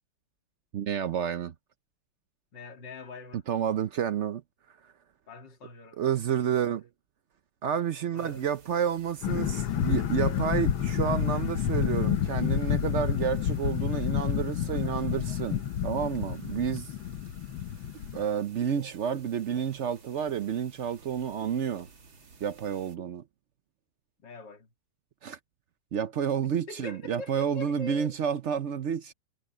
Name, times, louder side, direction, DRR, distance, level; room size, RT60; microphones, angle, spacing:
voice 1, 0.7-1.5 3.5-4.4 6.0-6.9 7.6-16.9 18.1-21.9 22.4-23.2 25.2-25.4 25.9-29.1, right 8 dB, 70° right, 0.6 m, -30 dB
voice 2, 2.5-3.4 5.3-6.7 8.1-8.5 24.2-24.7 26.4-28.2, left 2 dB, 65° left, 2.9 m, -44 dB
sound 1, 8.2-23.0, right 4 dB, 90° right, 3.1 m, -54 dB
sound 2, 9.2-18.2, left 10 dB, 90° left, 1.8 m, -29 dB
omnidirectional pair, 2.1 m